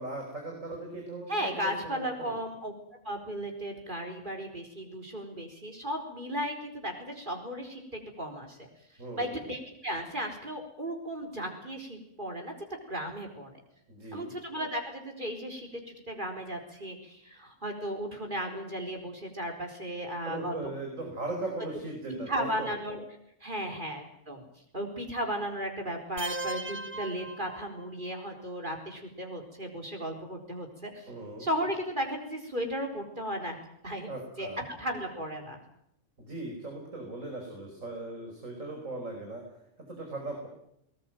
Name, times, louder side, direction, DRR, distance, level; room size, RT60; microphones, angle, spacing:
voice 1, 0.0-2.4 9.0-9.4 13.9-14.4 20.3-22.7 23.6-23.7 31.1-31.5 34.1-34.6 36.2-39.4 39.9-40.5, right 2 dB, 80° right, 2 dB, 5.4 m, -38 dB
voice 2, 1.3-2.7 3.0-8.7 9.2-12.5 12.9-13.5 14.1-15.7 16.1-20.6 22.1-23.0 23.4-24.5 24.7-31.1 31.4-33.6 33.8-34.1 34.4-34.5 34.8-35.6, equal, 40° right, 3 dB, 4.6 m, -35 dB
sound 1, 26.2-28.1, right 2 dB, 15° right, 0.6 m, -38 dB
21.0 x 20.0 x 9.2 m, 0.76 s
omnidirectional pair, 1.3 m